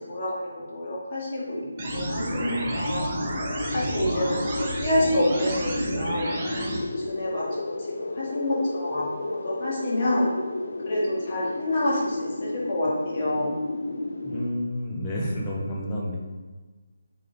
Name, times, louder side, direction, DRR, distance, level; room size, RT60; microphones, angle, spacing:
voice 1, 0.1-1.7 1.9-3.1 3.7-6.8 7.1-7.7 8.0-9.0 9.3-10.3 10.8-13.5, left 1 dB, 40° left, -6 dB, 1.4 m, -28 dB
sound 1, 1.5-14.5, left 2 dB, 70° left, 0.3 m, -32 dB
sound 2, 1.8-6.8, right 1 dB, 30° right, 0.7 m, -31 dB
voice 2, 14.2-16.2, equal, 20° left, -3 dB, 0.8 m, -30 dB
3.5 x 3.2 x 3.8 m, 1.3 s
figure-of-eight pair, 165°, 0 cm